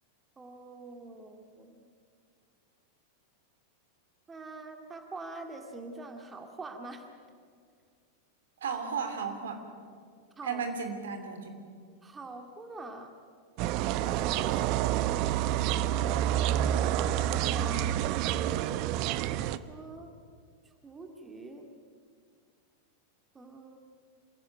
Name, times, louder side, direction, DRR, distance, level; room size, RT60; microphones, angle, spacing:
voice 1, 0.4-1.9 4.3-7.1 10.4-10.6 12.0-13.1 14.0-16.2 16.6-18.0 19.4-20.1 20.8-21.6 23.3-23.8, right 3 dB, 15° right, 4 dB, 2.2 m, -44 dB
voice 2, 8.6-9.6 10.4-11.5, right 5 dB, 65° right, 6 dB, 3.0 m, -34 dB
sound 1, 13.6-19.6, right 12 dB, 45° right, 0.8 m, -28 dB
26.5 x 17.0 x 9.1 m, 2.1 s
figure-of-eight pair, 90°, 0 cm